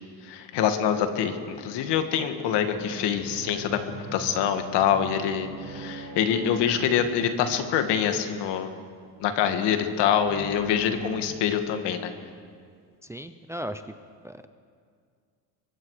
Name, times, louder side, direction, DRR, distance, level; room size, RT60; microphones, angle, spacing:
voice 1, 0.2-3.8 4.1-8.7 9.2-12.1, left 8 dB, 70° left, 7 dB, 2.0 m, -25 dB
sound 1, 2.6-8.0 10.2-11.2, right 3 dB, 35° right, 4.7 m, -41 dB
voice 2, 13.0-13.8 14.2-14.5, equal, 5° right, 9 dB, 0.5 m, -36 dB
24.0 x 23.0 x 4.9 m, 2.1 s
cardioid pair, 130°, 42 cm